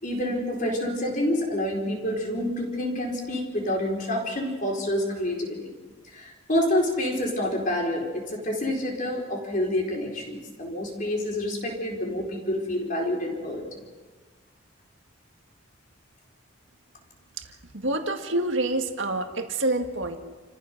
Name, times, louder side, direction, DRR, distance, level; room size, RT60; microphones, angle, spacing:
voice 1, 0.0-5.8 6.1-13.7, left 1 dB, 40° left, 0 dB, 4.6 m, -28 dB
voice 2, 17.7-20.2, right 2 dB, 65° right, 5 dB, 2.0 m, -27 dB
29.5 x 15.0 x 6.2 m, 1.3 s
head